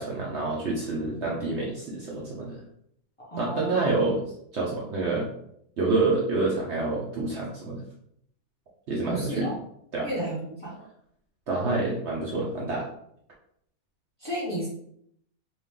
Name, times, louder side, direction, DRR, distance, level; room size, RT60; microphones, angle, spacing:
voice 1, 0.0-2.6 3.4-4.2 4.5-5.3 5.8-7.8 8.9-9.5 9.9-10.1 11.5-12.9, right 3 dB, 60° right, -4 dB, 0.8 m, -27 dB
voice 2, 3.2-4.2 9.1-9.6 10.0-10.8 11.5-11.9 14.2-14.7, right 1 dB, 25° left, -9 dB, 1.1 m, -33 dB
3.0 x 2.6 x 3.6 m, 0.70 s
omnidirectional pair, 1.6 m